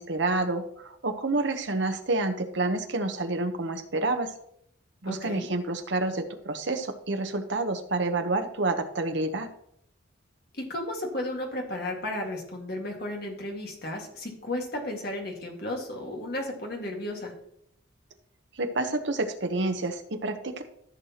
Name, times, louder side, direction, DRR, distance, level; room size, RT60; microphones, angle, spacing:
voice 1, 0.0-4.3 5.0-9.5 18.6-20.6, right 2 dB, 65° right, 7 dB, 1.0 m, -28 dB
voice 2, 5.1-5.5 10.5-17.3, left 1 dB, 50° left, 1 dB, 1.9 m, -34 dB
14.0 x 6.5 x 3.0 m, 0.73 s
head